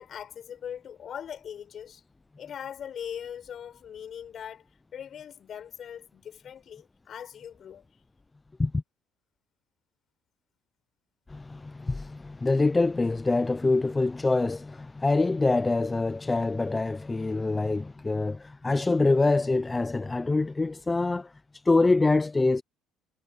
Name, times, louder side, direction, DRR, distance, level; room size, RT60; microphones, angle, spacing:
voice 1, 0.0-2.0 2.4-4.6 4.9-7.9, left 8 dB, 45° left, 6.6 m, -40 dB
voice 2, 11.3-21.3 21.6-22.6, left 3 dB, 15° left, 0.5 m, -25 dB
cardioid pair, 115°, 0 cm